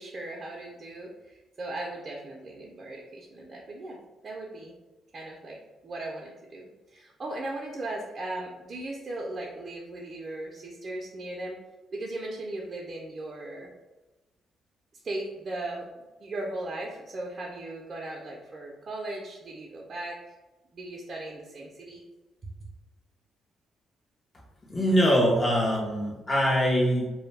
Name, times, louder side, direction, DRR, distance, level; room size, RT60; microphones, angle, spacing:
voice 1, 0.0-4.7 5.1-5.6 5.8-11.6 11.9-13.7 15.0-15.9 16.2-20.2 20.7-22.0, right 2 dB, 45° right, -1 dB, 0.4 m, -37 dB
voice 2, 24.6-27.1, equal, 35° left, -3 dB, 0.6 m, -23 dB
2.1 x 2.1 x 3.1 m, 1.1 s
supercardioid pair, 55°, 0 cm